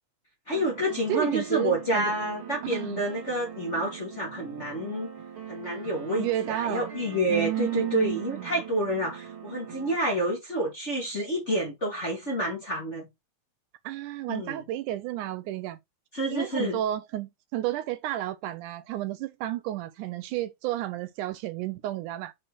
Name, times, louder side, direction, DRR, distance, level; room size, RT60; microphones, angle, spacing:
voice 1, 0.5-5.1 5.5-13.1 14.3-14.6 16.1-16.8, right 1 dB, 30° left, 1.5 m, -29 dB
sound 1, 0.5-10.0, right 7 dB, 45° right, 2.2 m, -42 dB
voice 2, 1.1-2.1 2.7-3.0 6.2-6.9 7.3-8.6 13.8-15.8 16.3-22.3, right 13 dB, 80° right, 2.0 m, -32 dB
6.2 x 4.3 x 4.5 m
omnidirectional pair, 3.8 m